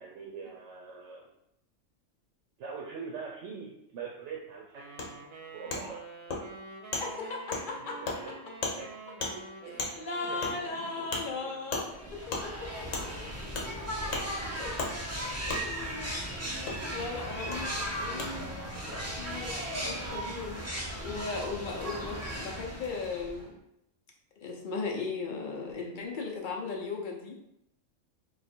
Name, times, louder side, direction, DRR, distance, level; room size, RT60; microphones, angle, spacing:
voice 1, 0.0-1.2 2.6-4.8 5.5-6.0 8.2-8.3 8.8-8.9 9.3-9.9 10.2-11.1 11.4-11.5 11.9-12.0, right 5 dB, 70° right, -1 dB, 0.9 m, -43 dB
sound 1, 4.7-11.7, right 3 dB, 90° right, 1.1 m, -47 dB
Wood, 5.0-5.1 5.7-5.8 6.3-6.4 6.9-7.0 7.5-7.6 8.0-8.2 8.6-8.8 9.2-9.3 9.8-9.9 10.4-10.5 11.1-11.2 11.7-11.8 12.3-12.4 12.9-13.0 13.5-13.7 14.1-14.2 14.8-14.9 15.5-15.6 16.7-16.8 17.5-17.6 18.2-18.3, left 3 dB, 75° left, 1.2 m, -33 dB
voice 2, 7.0-8.2 9.7-13.3 14.5-14.7 15.1-18.6 19.0-20.7 21.0-23.5 24.4-27.4, left 4 dB, 60° left, 0 dB, 0.5 m, -38 dB
sound 2, 11.9-23.5, equal, 25° right, 0.3 m, -37 dB
3.0 x 2.4 x 4.2 m, 0.79 s
omnidirectional pair, 1.3 m